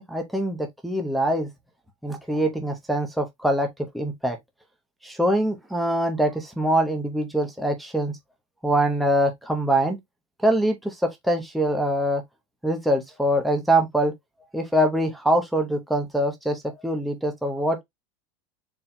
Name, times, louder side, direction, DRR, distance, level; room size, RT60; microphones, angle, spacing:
voice 1, 0.0-1.5 2.0-3.7 3.9-4.4 5.0-8.1 8.6-10.0 10.4-11.0 11.2-12.2 12.6-14.1 14.5-17.8, right 1 dB, ahead, 0.7 m, -23 dB
4.4 x 2.3 x 3.7 m
supercardioid pair, 150°, 15 cm